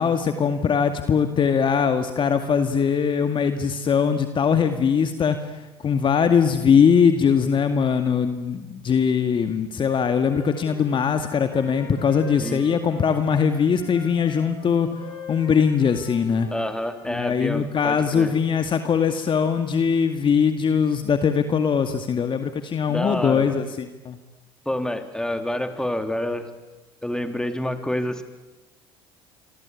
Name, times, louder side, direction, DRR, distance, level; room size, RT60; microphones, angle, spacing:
voice 1, 0.0-5.4 5.8-14.9 15.3-16.5 17.1-24.2, left 6 dB, 40° left, 8 dB, 2.1 m, -21 dB
Wind instrument woodwind instrument, 10.2-17.3, left 4 dB, 75° left, 5.8 m, -43 dB
voice 2, 16.5-18.4 22.9-23.6 24.7-26.5 27.0-28.2, left 1 dB, 5° left, 7 dB, 3.6 m, -28 dB
28.0 x 24.5 x 8.6 m, 1.1 s
hypercardioid pair, 60°, 13 cm